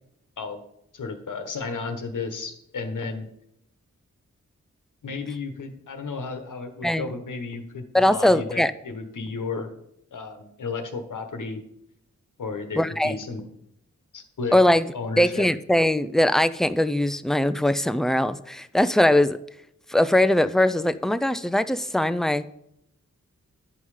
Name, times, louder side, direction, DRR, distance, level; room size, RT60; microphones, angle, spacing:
voice 1, 0.9-3.3 5.0-9.7 10.1-11.6 12.4-13.4 14.1-14.5 14.9-15.5, left 4 dB, 90° left, 6 dB, 1.2 m, -33 dB
voice 2, 7.9-8.7 12.8-13.1 14.5-14.9 15.2-19.4 19.9-22.4, left 1 dB, ahead, 13 dB, 0.4 m, -21 dB
11.0 x 5.5 x 4.9 m, 0.77 s
wide cardioid pair, 90°, 30 cm